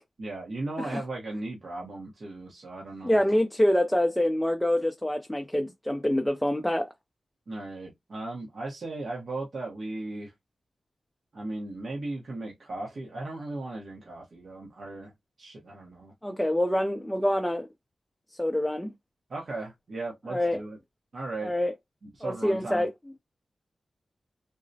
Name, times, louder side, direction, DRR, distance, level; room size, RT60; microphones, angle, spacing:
voice 1, 0.2-3.2 7.5-10.3 11.3-15.1 15.4-16.1 19.3-20.8 21.1-21.5 22.0-22.8, right 2 dB, 60° right, 0.9 m, -37 dB
voice 2, 3.0-6.9 16.2-17.7 18.4-18.9 20.3-20.6 21.4-21.7 22.2-22.9, left 1 dB, 5° left, 0.4 m, -26 dB
3.8 x 2.0 x 2.6 m
wide cardioid pair, 130°, 0 cm